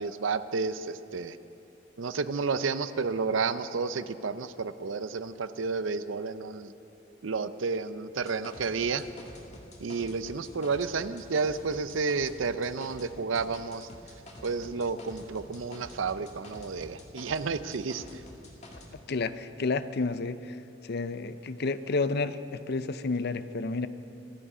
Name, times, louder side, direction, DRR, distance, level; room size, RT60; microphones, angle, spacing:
voice 1, 0.0-1.4 2.0-6.7 7.2-9.1 9.8-13.9 14.4-18.2, right 4 dB, 75° right, 12 dB, 0.6 m, -31 dB
sound 1, 8.2-13.1 13.3-18.9, left 1 dB, 35° left, 1.9 m, -48 dB
voice 2, 19.1-20.6 20.8-23.9, left 3 dB, 55° left, 13 dB, 0.6 m, -30 dB
26.0 x 9.9 x 5.0 m, 2.7 s
head